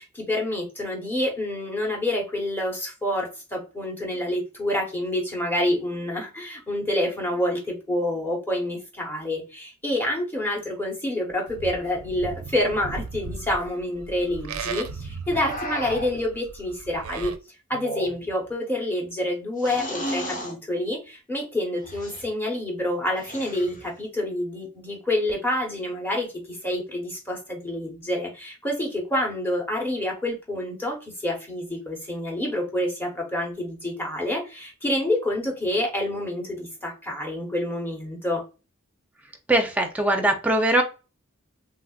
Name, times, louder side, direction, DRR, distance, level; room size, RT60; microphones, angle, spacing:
voice 1, 0.0-17.3 17.7-38.4, left 1 dB, 10° left, -1 dB, 0.9 m, -28 dB
Livestock farm animals working animals, 11.5-17.4, right 5 dB, 80° right, 0.4 m, -37 dB
sound 1, 15.3-16.2 17.7-18.5 19.6-20.6 21.8-22.2 23.2-23.9, equal, 35° left, 1.0 m, -33 dB
voice 2, 39.5-40.8, right 1 dB, 5° right, 3 dB, 0.5 m, -21 dB
3.6 x 2.3 x 2.3 m, 0.30 s
head